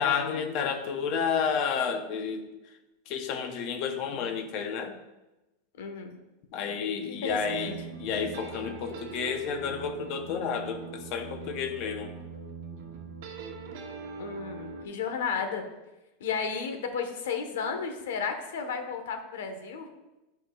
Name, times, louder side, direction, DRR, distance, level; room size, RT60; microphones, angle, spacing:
voice 1, 0.0-2.4 3.1-4.9 6.5-12.1, left 6 dB, 35° left, 6 dB, 0.8 m, -31 dB
voice 2, 5.8-6.2 7.1-7.8 14.2-15.6 16.2-19.9, left 6 dB, 85° left, 5 dB, 1.2 m, -33 dB
sound 1, 7.3-14.8, right 5 dB, 50° right, 0.9 m, -42 dB
11.5 x 5.7 x 2.4 m, 1.0 s
supercardioid pair, 175°, 0 cm